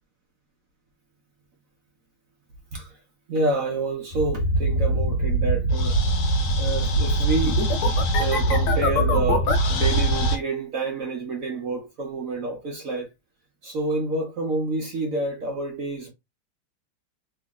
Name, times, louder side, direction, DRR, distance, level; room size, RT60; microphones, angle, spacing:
voice 1, 3.3-5.9 6.2-13.1 13.6-16.1, right 2 dB, 70° right, 0.8 m, -28 dB
sound 1, 4.1-10.4, right 1 dB, 80° left, 1.7 m, -22 dB
3.3 x 2.9 x 2.2 m
omnidirectional pair, 2.3 m